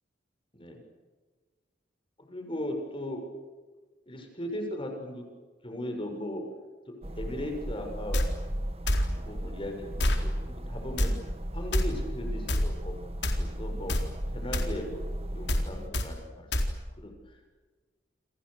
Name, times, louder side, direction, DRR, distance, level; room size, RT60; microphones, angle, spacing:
voice 1, 2.2-3.2 4.1-5.2 5.6-6.4 7.2-8.3 9.1-11.2 11.5-12.9 13.3-14.0 14.3-15.1 15.3-16.5 17.0-17.1, left 1 dB, 30° left, 4 dB, 6.6 m, -37 dB
sound 1, 7.0-15.9, equal, 35° right, 1.6 m, -37 dB
sound 2, 8.1-8.3 8.9-9.1 10.0-10.2 11.0-11.1 11.7-11.8 12.5-12.7 13.2-13.4 13.9-14.1 14.5-14.7 15.5-15.7 15.9-16.1 16.5-16.7, left 1 dB, 65° left, 4.1 m, -25 dB
30.0 x 27.5 x 6.6 m, 1.4 s
head